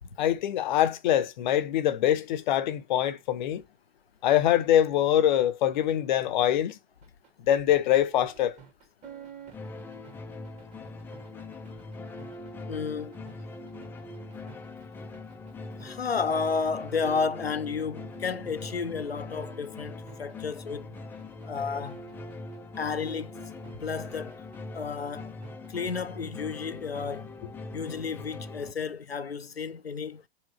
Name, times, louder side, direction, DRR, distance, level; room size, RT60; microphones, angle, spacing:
voice 1, 0.2-3.6 4.2-6.8 7.5-8.6, left 11 dB, 50° left, 0.8 m, -24 dB
sound 1, 7.0-25.7, right 7 dB, 25° right, 1.9 m, -52 dB
sound 2, 9.5-28.7, left 2 dB, 5° left, 0.5 m, -42 dB
voice 2, 12.7-13.1 15.8-21.0 21.4-22.0 22.8-23.4 23.8-24.4 24.7-25.3 25.7-27.3 27.7-30.2, left 5 dB, 85° left, 0.6 m, -32 dB
5.0 x 3.5 x 5.6 m
figure-of-eight pair, 100°, 30 cm